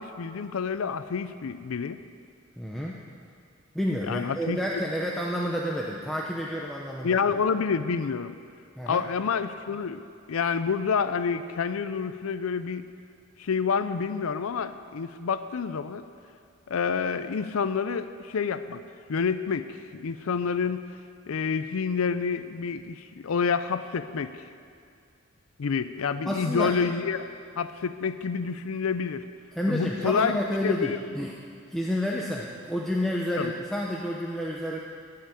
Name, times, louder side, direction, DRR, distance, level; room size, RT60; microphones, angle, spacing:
voice 1, 0.0-2.0 4.1-4.8 7.0-8.3 8.9-10.0 10.3-12.9 13.4-16.0 16.7-18.8 19.1-20.9 21.3-24.4 25.6-27.3 27.6-29.2 29.7-31.0 33.4-33.5, left 5 dB, 90° left, 12 dB, 0.5 m, -28 dB
voice 2, 2.6-2.9 3.7-7.2 8.8-9.1 26.3-26.7 29.5-31.3 31.7-34.8, equal, ahead, -3 dB, 0.7 m, -30 dB
15.0 x 5.8 x 8.9 m, 2.3 s
head